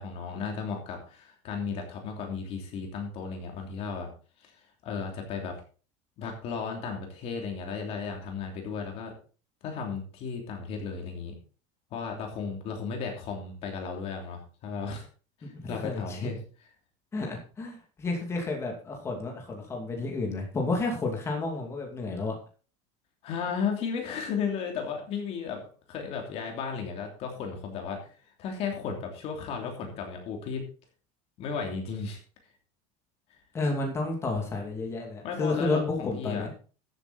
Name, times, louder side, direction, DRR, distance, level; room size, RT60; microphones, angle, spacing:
voice 1, 0.0-4.1 4.4-4.5 4.8-5.5 6.2-9.1 9.6-11.4 11.9-15.1 15.4-16.4 23.2-25.6 25.9-30.6 31.4-32.2 35.2-36.5, left 5 dB, 40° left, 2 dB, 3.0 m, -34 dB
voice 2, 15.5-16.2 17.1-22.4 33.5-36.5, left 3 dB, 15° left, 1 dB, 2.6 m, -31 dB
14.0 x 8.2 x 4.2 m, 0.38 s
cardioid pair, 175°, 17 cm